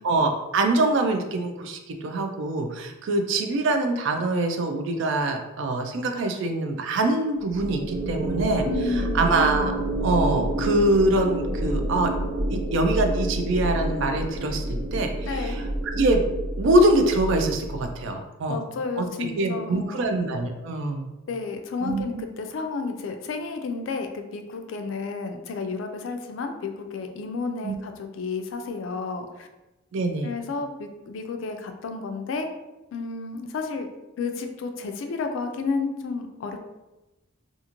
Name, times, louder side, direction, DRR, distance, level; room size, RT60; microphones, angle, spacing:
voice 1, 0.0-8.7 9.1-9.7 10.0-12.1 12.5-16.3 16.6-18.6 19.0-21.1 21.8-22.2 27.6-27.7 29.9-30.3, right 2 dB, 65° right, 5 dB, 0.4 m, -24 dB
sound 1, 7.4-17.9, right 1 dB, 80° right, 0.8 m, -28 dB
voice 2, 8.6-9.3 15.3-15.6 18.5-20.1 21.3-29.5 30.2-32.5 32.9-33.9 34.2-36.6, left 4 dB, 70° left, 6 dB, 0.3 m, -31 dB
2.5 x 2.4 x 2.9 m, 1.0 s
head